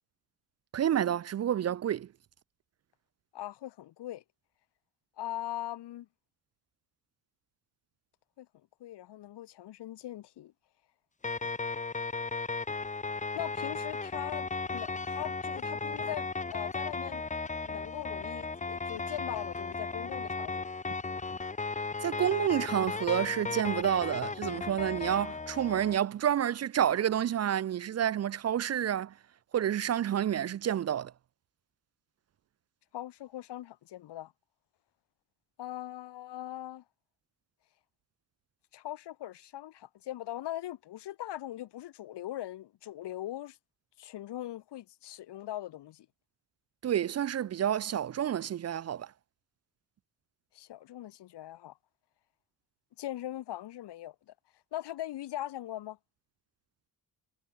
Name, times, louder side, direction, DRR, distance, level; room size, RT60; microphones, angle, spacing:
voice 1, 0.7-2.1 22.0-29.1 29.5-31.1 46.8-49.1, right 10 dB, 40° right, 0.5 m, -29 dB
voice 2, 3.3-4.2 5.2-6.1 8.4-8.5 8.8-10.5 13.3-17.2 17.6-20.7 32.9-34.3 35.6-36.8 38.7-43.6 44.0-46.1 50.5-51.7 53.0-54.3 54.7-56.0, left 13 dB, 85° left, 3.1 m, -40 dB
sound 1, 11.2-26.0, left 4 dB, 20° left, 1.3 m, -35 dB
cardioid pair, 120°, 40 cm